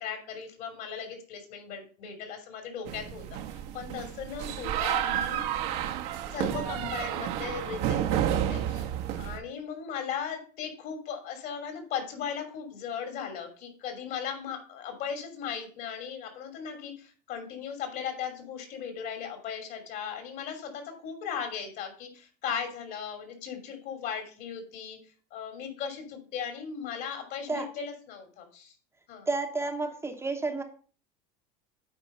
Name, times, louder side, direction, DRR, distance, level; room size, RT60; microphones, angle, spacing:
voice 1, 0.0-3.2 3.5-5.4 6.3-8.9 9.2-25.0 25.3-28.7 29.1-29.3, left 7 dB, 55° left, 5 dB, 2.9 m, -37 dB
sound 1, 2.8-9.4, right 10 dB, 65° right, 1.2 m, -31 dB
voice 2, 29.3-30.6, right 3 dB, 15° right, 3 dB, 1.0 m, -31 dB
8.8 x 4.5 x 5.4 m, 0.41 s
supercardioid pair, 120°, 19 cm